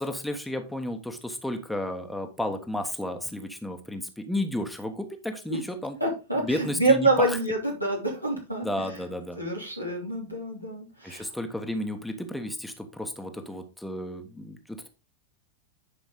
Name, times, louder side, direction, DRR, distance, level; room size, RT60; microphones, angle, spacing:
voice 1, 0.0-6.0 6.4-7.4 8.6-9.4 11.0-14.9, left 1 dB, 5° left, 5 dB, 1.2 m, -32 dB
voice 2, 6.0-8.7 9.4-11.3, right 2 dB, 90° right, -2 dB, 2.8 m, -26 dB
10.5 x 5.3 x 3.8 m, 0.30 s
figure-of-eight pair, 90°, 0 cm